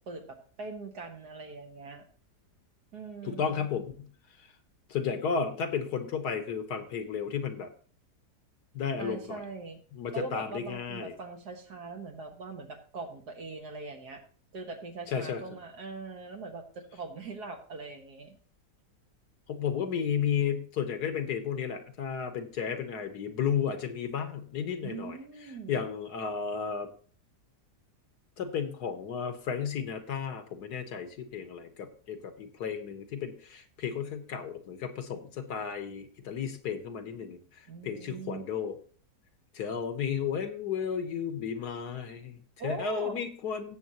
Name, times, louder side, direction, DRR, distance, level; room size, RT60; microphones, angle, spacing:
voice 1, 0.1-2.1 2.9-3.7 9.0-9.8 10.1-14.2 14.5-18.4 24.8-25.8 37.7-38.5 42.6-43.2, right 4 dB, 75° right, 4 dB, 2.0 m, -41 dB
voice 2, 3.2-4.1 4.9-7.7 8.7-9.4 9.9-11.1 15.1-15.4 19.5-25.2 25.7-26.9 28.4-37.4 37.8-38.8 39.5-43.8, left 7 dB, 75° left, 8 dB, 1.7 m, -33 dB
17.0 x 7.5 x 2.9 m, 0.42 s
omnidirectional pair, 1.7 m